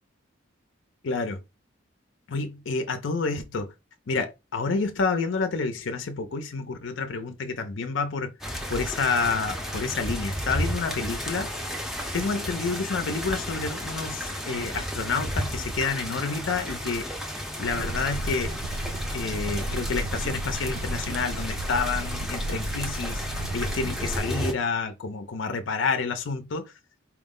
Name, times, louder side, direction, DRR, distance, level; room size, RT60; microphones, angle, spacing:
voice 1, 1.0-1.4 2.3-3.7 4.1-8.3 8.7-11.5 12.1-17.1 17.6-18.6 19.1-23.2 23.5-26.7, left 4 dB, 65° left, 0.5 m, -29 dB
sound 1, 8.4-24.5, equal, ahead, 0.5 m, -33 dB
sound 2, 17.7-24.2, right 1 dB, 75° right, 0.5 m, -33 dB
4.5 x 2.1 x 3.6 m
head